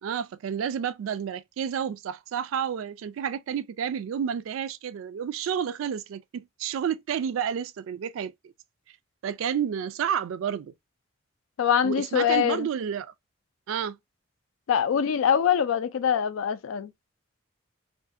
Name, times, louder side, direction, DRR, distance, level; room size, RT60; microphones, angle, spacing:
voice 1, 0.0-8.5 9.2-10.7 11.8-13.1 13.7-14.0, right 8 dB, 85° right, 0.3 m, -30 dB
voice 2, 11.6-12.7 14.7-16.9, left 8 dB, 85° left, 0.4 m, -23 dB
2.5 x 2.3 x 2.4 m
head